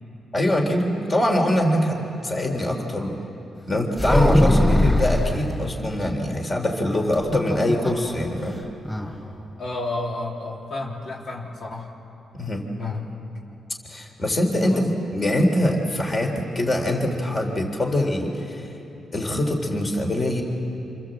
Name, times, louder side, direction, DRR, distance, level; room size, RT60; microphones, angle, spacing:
voice 1, 0.3-3.2 3.7-8.6 12.3-12.7 13.9-18.7 19.1-20.4, left 1 dB, 30° left, 2 dB, 3.6 m, -23 dB
sound 1, 4.0-5.4 7.1-8.1 8.4-8.5 8.8-9.1, left 1 dB, 10° left, 4.9 m, -19 dB
voice 2, 9.6-11.9 12.8-13.2 14.6-14.9, left 2 dB, 60° left, -3 dB, 3.4 m, -31 dB
27.5 x 27.0 x 7.9 m, 2.9 s
cardioid pair, 105°, 0 cm